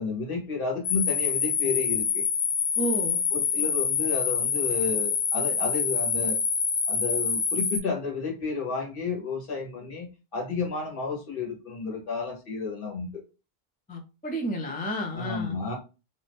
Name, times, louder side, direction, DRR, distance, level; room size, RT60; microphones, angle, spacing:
voice 1, 0.0-2.3 3.3-6.4 6.9-13.2 15.1-15.7, left 4 dB, 60° left, 1.3 m, -31 dB
sound 1, 0.8-7.8, left 6 dB, 85° left, 0.9 m, -26 dB
voice 2, 2.8-3.2 13.9-15.6, equal, 15° left, 0.3 m, -31 dB
2.6 x 2.5 x 3.4 m
omnidirectional pair, 1.0 m